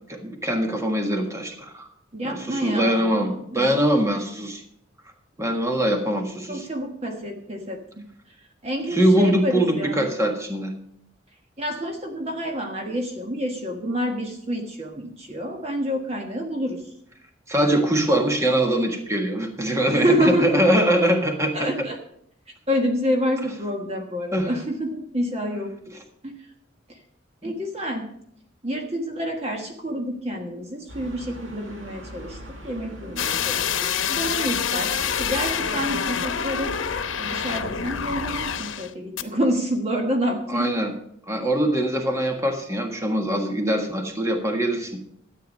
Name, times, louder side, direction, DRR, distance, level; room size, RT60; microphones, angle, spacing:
voice 1, 0.1-1.9 2.2-4.6 5.4-6.7 8.9-10.7 17.5-21.9 24.3-24.5 27.4-27.5 40.5-40.9 41.3-44.9, right 1 dB, 15° right, 4 dB, 1.5 m, -23 dB
voice 2, 2.1-3.7 6.5-7.8 8.6-10.1 11.6-16.8 19.9-20.8 21.5-22.0 22.7-26.3 27.4-28.1 28.6-32.4 32.6-36.7 37.1-40.7, equal, 30° right, 3 dB, 1.4 m, -28 dB
sound 1, 30.9-38.6, equal, 80° right, 2.3 m, -44 dB
sound 2, 33.2-38.9 39.2-39.3, left 7 dB, 85° left, 0.9 m, -26 dB
13.0 x 9.0 x 5.3 m, 0.71 s
head